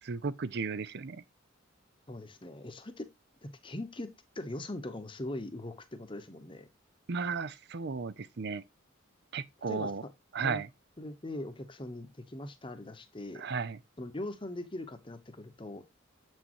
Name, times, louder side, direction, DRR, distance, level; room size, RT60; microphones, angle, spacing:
voice 1, 0.0-1.2 7.1-8.6 9.3-10.0 10.3-10.7 13.4-13.8, right 5 dB, 55° right, 0.5 m, -34 dB
voice 2, 2.1-3.1 3.4-6.7 9.6-9.9 10.4-10.6 11.0-13.5 14.0-15.8, left 1 dB, 25° left, 1.0 m, -41 dB
8.3 x 6.4 x 3.0 m
head